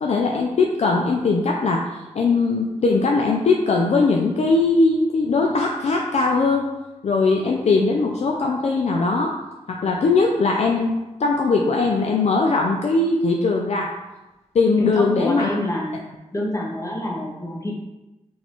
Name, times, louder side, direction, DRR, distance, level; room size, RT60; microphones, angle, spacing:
voice 1, 0.0-1.8 2.1-6.7 7.0-9.3 9.7-10.9 11.2-13.9 14.5-15.5, left 3 dB, 60° left, 0 dB, 0.4 m, -20 dB
voice 2, 14.8-16.0 16.3-17.8, left 1 dB, 25° left, -2 dB, 1.0 m, -27 dB
3.8 x 2.5 x 3.0 m, 1.0 s
cardioid pair, 55°, 13 cm